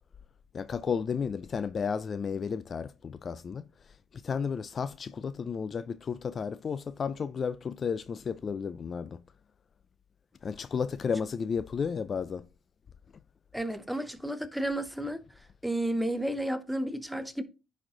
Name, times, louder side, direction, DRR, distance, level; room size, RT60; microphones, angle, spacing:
voice 1, 0.5-3.6 4.1-9.2 10.4-12.5, left 6 dB, 40° left, 0.4 m, -33 dB
voice 2, 13.5-15.2 15.6-17.4, right 1 dB, ahead, 0.8 m, -32 dB
10.0 x 4.2 x 3.7 m
cardioid pair, 100°, 0 cm